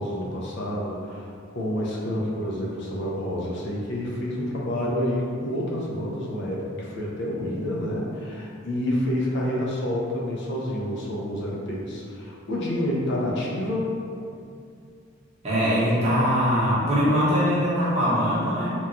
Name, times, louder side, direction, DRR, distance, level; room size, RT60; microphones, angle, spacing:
voice 1, 0.0-13.9, left 1 dB, 60° left, -4 dB, 0.5 m, -28 dB
voice 2, 15.4-18.7, equal, 35° right, -10 dB, 0.8 m, -22 dB
2.9 x 2.2 x 2.5 m, 2.4 s
head